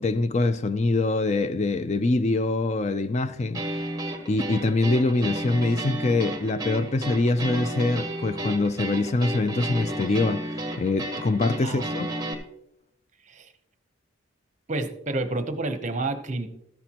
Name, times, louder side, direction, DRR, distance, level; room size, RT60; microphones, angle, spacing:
voice 1, 0.0-3.6 4.3-12.1, left 2 dB, 35° left, 0.4 m, -24 dB
sound 1, 3.5-12.3, right 1 dB, 20° right, 1.2 m, -32 dB
voice 2, 11.6-12.0 13.3-13.5 14.7-16.5, right 2 dB, 35° right, 0.9 m, -30 dB
13.0 x 10.0 x 3.0 m
head